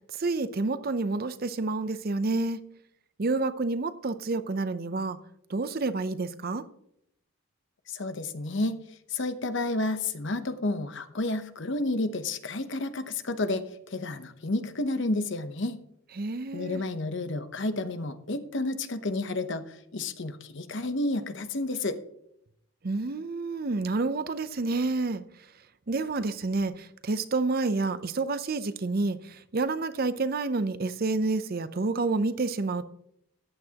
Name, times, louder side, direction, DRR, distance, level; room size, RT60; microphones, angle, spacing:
voice 1, 0.2-2.6 3.2-5.2 5.5-6.6 16.2-16.8 22.8-25.2 25.9-32.8, right 3 dB, 45° right, 0.5 m, -29 dB
voice 2, 7.9-8.8 9.1-15.8 16.5-19.7 19.9-22.0, left 2 dB, 55° left, 0.8 m, -30 dB
14.0 x 9.8 x 2.9 m
head